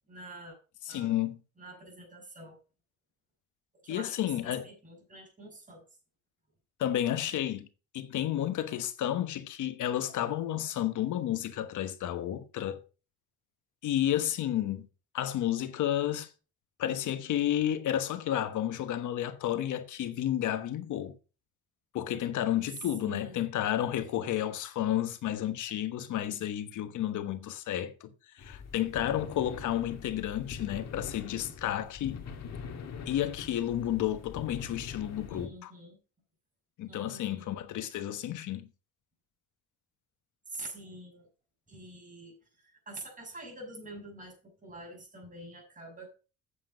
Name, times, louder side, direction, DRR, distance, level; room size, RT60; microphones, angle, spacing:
voice 1, 0.1-0.6 0.9-1.1 1.6-2.6 3.8-5.8 23.0-23.4 35.3-36.0 36.9-37.6 40.5-41.3 41.7-46.1, right 2 dB, 25° right, 6.3 m, -46 dB
voice 2, 0.9-1.4 3.9-4.7 6.8-7.7 7.9-12.8 13.8-14.9 15.1-16.3 16.8-21.1 21.9-28.1 28.4-32.2 33.1-35.7 36.8-38.7, left 11 dB, 80° left, 1.3 m, -31 dB
sound 1, 28.4-35.5, left 6 dB, 60° left, 2.0 m, -43 dB
8.5 x 7.5 x 5.1 m
cardioid pair, 90°, 30 cm